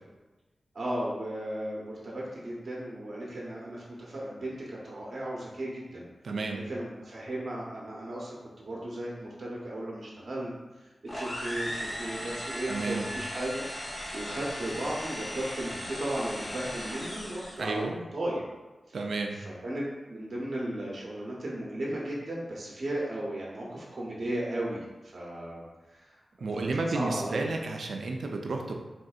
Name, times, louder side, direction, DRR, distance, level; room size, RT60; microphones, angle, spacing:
voice 1, 0.7-6.1 6.5-18.5 18.9-19.0 19.3-26.2 26.5-27.5, right 1 dB, 60° right, -5 dB, 0.7 m, -36 dB
voice 2, 6.2-6.6 12.7-13.0 17.6-17.9 18.9-19.4 26.4-28.7, right 3 dB, 80° right, 2 dB, 0.4 m, -31 dB
sound 1, 11.1-17.8, equal, 40° left, 0.8 m, -37 dB
3.5 x 2.6 x 2.3 m, 1.1 s
cardioid pair, 60°, 0 cm